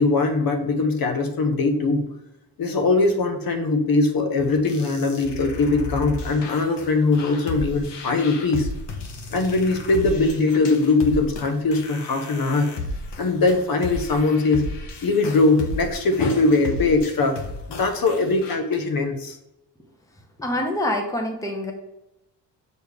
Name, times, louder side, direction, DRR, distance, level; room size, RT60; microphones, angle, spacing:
voice 1, 0.0-2.1 2.6-8.7 9.3-12.7 13.2-14.6 15.0-17.4 17.7-19.4, left 3 dB, 55° left, 5 dB, 1.0 m, -21 dB
sound 1, 4.4-18.6, left 2 dB, 90° left, 1.1 m, -34 dB
voice 2, 20.4-21.7, left 1 dB, 10° left, 3 dB, 0.9 m, -25 dB
6.8 x 4.3 x 3.4 m, 0.90 s
wide cardioid pair, 150°, 41 cm